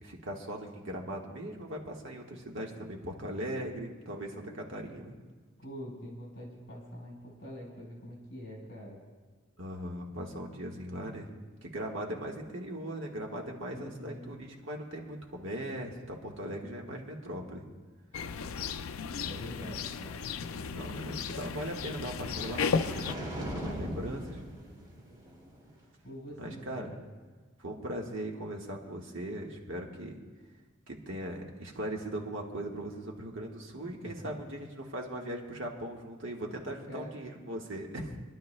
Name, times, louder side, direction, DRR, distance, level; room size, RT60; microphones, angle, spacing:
voice 1, 0.0-5.2 9.6-11.3 11.6-17.6 20.8-24.4 26.4-26.9 27.6-30.2 30.9-38.2, right 1 dB, 65° right, 0 dB, 1.5 m, -39 dB
voice 2, 5.6-9.0 13.7-14.3 19.2-20.2 26.0-27.0 34.0-34.4 36.9-37.1, equal, 50° left, -4 dB, 4.3 m, -45 dB
sound 1, 18.1-23.1, left 5 dB, 80° left, 0.4 m, -34 dB
sound 2, 21.5-25.8, equal, 20° right, 2.3 m, -41 dB
26.5 x 11.5 x 2.2 m, 1.4 s
head